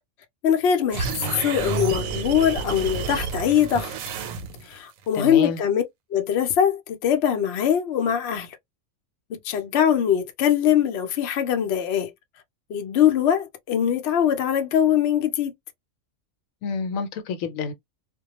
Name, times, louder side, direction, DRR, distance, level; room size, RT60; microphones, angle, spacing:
voice 1, 0.4-3.9 4.6-5.8 6.1-8.6 9.3-12.1 12.7-15.5, left 9 dB, 60° left, 0.8 m, -22 dB
sound 1, 0.9-4.8, right 5 dB, 85° right, 1.0 m, -30 dB
voice 2, 5.1-5.6 16.6-17.7, left 5 dB, 80° left, 1.0 m, -28 dB
2.2 x 2.2 x 2.8 m
omnidirectional pair, 1.4 m